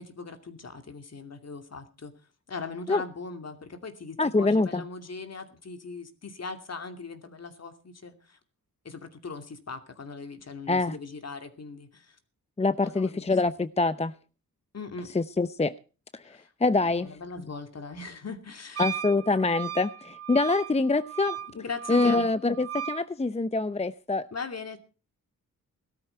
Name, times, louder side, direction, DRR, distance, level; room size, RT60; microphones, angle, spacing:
voice 1, 0.0-2.1 2.5-8.4 8.8-12.2 12.8-13.3 14.7-15.1 16.2-16.5 16.8-18.9 21.5-22.3 24.3-24.8, left 4 dB, 50° left, 2.6 m, -40 dB
voice 2, 4.2-4.8 10.7-11.0 12.6-14.1 15.1-15.8 16.1-17.2 18.8-21.4 21.9-24.3, left 3 dB, 20° left, 0.7 m, -25 dB
Wind instrument woodwind instrument, 18.8-23.0, right 9 dB, 45° right, 0.7 m, -36 dB
17.0 x 13.0 x 4.5 m
cardioid pair, 75°, 34 cm